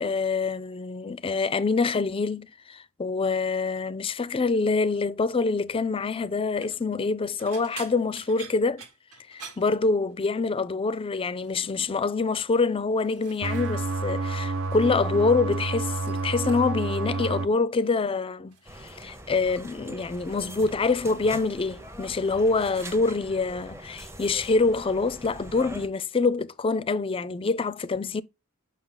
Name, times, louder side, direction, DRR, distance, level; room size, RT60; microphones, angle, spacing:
voice 1, 0.0-8.8 9.3-28.2, left 4 dB, 25° left, 0.4 m, -26 dB
sound 1, 6.4-6.8 7.4-10.4 10.7-11.1 11.4-11.9 12.6-14.0 14.3-15.1 15.4-16.9 17.8-18.1 18.5-20.6 20.8-21.4 21.7-21.9 23.2-23.3, right 6 dB, 85° right, 1.4 m, -49 dB
sound 2, 13.4-17.5, right 3 dB, 60° right, 0.5 m, -29 dB
sound 3, 18.7-25.9, right 1 dB, 10° right, 0.7 m, -43 dB
5.9 x 5.9 x 3.8 m
head